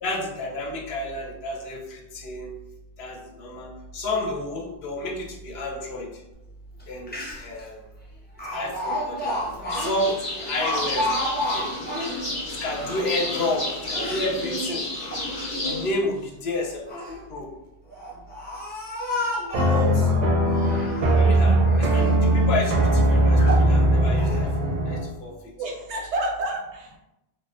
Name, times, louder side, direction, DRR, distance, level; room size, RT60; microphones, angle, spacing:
voice 1, 0.0-2.5 3.0-6.1 6.9-7.8 8.5-11.7 12.5-14.9 15.6-17.5 19.7-20.1 21.1-25.4, left 2 dB, 70° left, 0 dB, 0.8 m, -31 dB
Speech, 6.8-6.9 7.1-7.6 8.4-12.2 12.7-14.3 14.9-15.7 16.6-17.2 17.9-19.9 20.5-21.3 21.7-22.2 22.7-22.8 23.4-23.7 24.2-24.4, left 1 dB, 15° left, 0.3 m, -31 dB
sound 1, 9.7-15.9, left 1 dB, 40° left, 0.8 m, -31 dB
sound 2, 19.5-25.1, right 1 dB, 55° right, 0.5 m, -20 dB
voice 2, 19.7-20.3 25.6-27.0, right 1 dB, 85° right, 0 dB, 0.9 m, -31 dB
2.5 x 2.1 x 2.3 m, 0.93 s
omnidirectional pair, 1.1 m